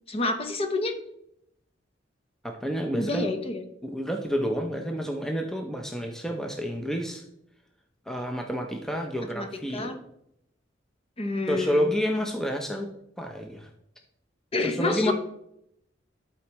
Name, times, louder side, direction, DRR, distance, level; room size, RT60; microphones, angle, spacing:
voice 1, 0.1-0.9 3.0-3.6 9.3-9.5 9.7-10.0 11.2-11.9 14.5-15.1, left 3 dB, 30° left, 7 dB, 0.8 m, -28 dB
voice 2, 2.4-3.3 3.8-7.2 8.1-9.9 11.5-12.9 13.2-13.7 14.6-15.1, equal, 5° left, 3 dB, 0.6 m, -29 dB
11.5 x 4.3 x 3.0 m, 0.77 s
head